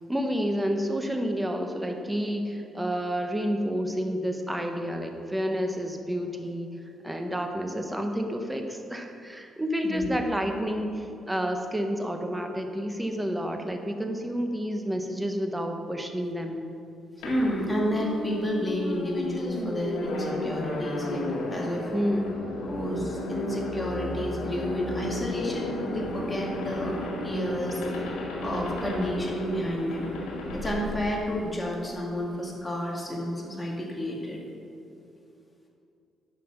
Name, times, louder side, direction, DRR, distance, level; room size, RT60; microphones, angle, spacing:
voice 1, 0.1-6.8 7.0-16.7 21.9-22.4, equal, 10° right, 5 dB, 1.0 m, -30 dB
sound 1, 17.2-32.0, left 2 dB, 90° left, 1.8 m, -34 dB
voice 2, 17.2-21.9 22.6-27.0 27.2-27.8 28.4-30.1 30.5-34.4, equal, 15° left, -2 dB, 2.1 m, -30 dB
9.1 x 6.1 x 5.9 m, 2.7 s
cardioid pair, 90°, 0 cm